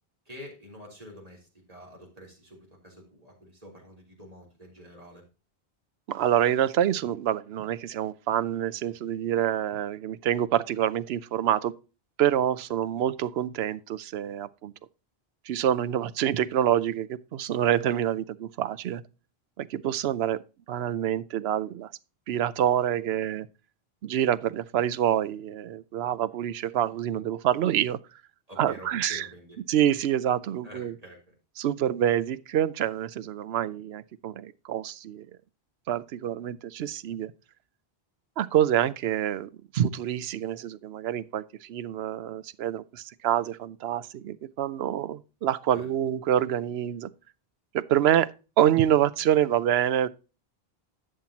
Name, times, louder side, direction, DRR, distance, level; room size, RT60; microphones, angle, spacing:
voice 1, 0.3-5.2 12.7-12.8 28.5-29.6 30.6-31.3 45.7-45.9, equal, 40° right, 3.5 m, -47 dB
voice 2, 6.1-11.7 12.2-14.7 15.5-19.0 19.6-20.4 20.7-21.9 22.3-23.5 24.0-28.0 28.6-29.3 29.7-30.9 31.6-35.3 35.9-37.3 38.4-47.1 47.7-48.3 48.6-50.1, right 11 dB, 80° right, 0.8 m, -26 dB
11.0 x 7.5 x 2.9 m
omnidirectional pair, 1.0 m